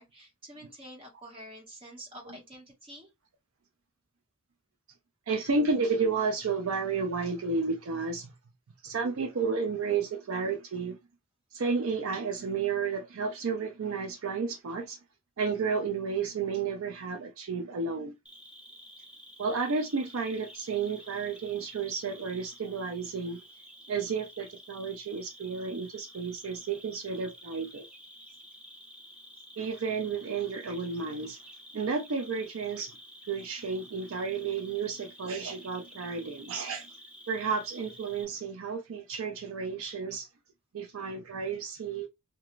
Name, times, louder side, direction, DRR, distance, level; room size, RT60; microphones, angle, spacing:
voice 1, 0.0-3.1 28.3-28.4, equal, 25° right, 1.2 m, -48 dB
voice 2, 5.3-8.3 8.8-11.0 11.5-15.0 15.4-18.1 19.4-23.4 23.9-27.9 29.6-31.4 31.7-33.0 33.3-36.9 37.3-40.3 40.7-42.1, right 5 dB, 65° right, 0.4 m, -32 dB
Cricket, 18.3-38.3, equal, 5° right, 0.5 m, -51 dB
2.4 x 2.2 x 3.0 m
head